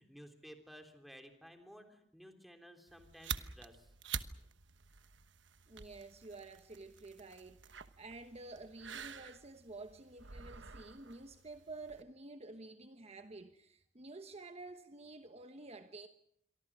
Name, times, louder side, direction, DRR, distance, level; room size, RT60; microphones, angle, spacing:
voice 1, 0.0-3.9, equal, ahead, 3.4 m, -55 dB
sound 1, 2.9-12.0, right 7 dB, 85° right, 1.2 m, -48 dB
voice 2, 5.7-16.1, right 3 dB, 35° right, 1.1 m, -50 dB
27.5 x 23.5 x 6.1 m
head